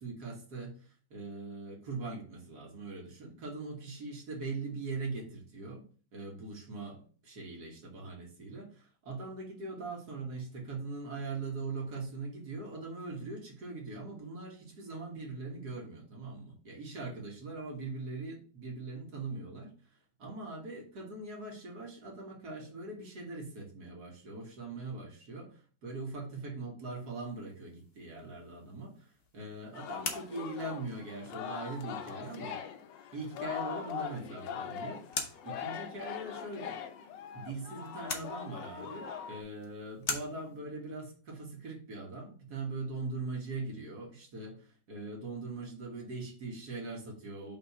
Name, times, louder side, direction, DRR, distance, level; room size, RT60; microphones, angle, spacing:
voice 1, 0.0-19.7 20.2-32.6 33.1-35.0 35.4-36.8 37.3-47.6, right 3 dB, 55° right, 0 dB, 2.0 m, -41 dB
sound 1, 26.9-40.6, left 4 dB, 45° left, 0.8 m, -45 dB
Singing, 29.7-39.4, left 8 dB, 75° left, 1.4 m, -41 dB
5.6 x 3.5 x 5.6 m, 0.41 s
omnidirectional pair, 2.1 m